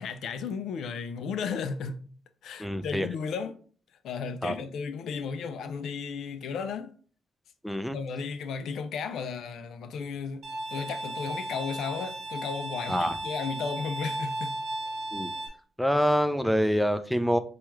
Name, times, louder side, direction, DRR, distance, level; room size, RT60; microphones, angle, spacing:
voice 1, 0.0-2.0 2.4-3.5 4.0-6.9 7.9-10.4 10.7-14.5, left 5 dB, 75° left, 0.4 m, -34 dB
voice 2, 2.6-3.1 4.4-4.5 7.6-8.0 12.9-13.2 15.1-15.3 15.8-17.4, equal, ahead, 0.4 m, -26 dB
Bowed string instrument, 10.4-15.5, right 1 dB, 65° right, 0.9 m, -35 dB
4.5 x 2.3 x 3.1 m
cardioid pair, 75°, 0 cm